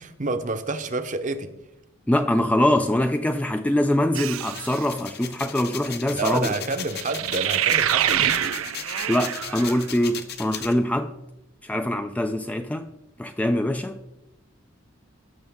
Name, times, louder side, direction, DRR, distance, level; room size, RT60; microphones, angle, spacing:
voice 1, 0.0-1.5 6.1-8.6, right 3 dB, 40° right, 0.8 m, -29 dB
voice 2, 2.1-6.5 9.1-11.1 11.6-12.9 13.2-14.0, left 1 dB, 5° left, 0.3 m, -23 dB
sound 1, 4.1-4.8 6.9-9.8, right 11 dB, 80° right, 0.5 m, -25 dB
sound 2, 4.4-10.7, left 8 dB, 50° left, 0.9 m, -36 dB
16.0 x 6.2 x 3.6 m
head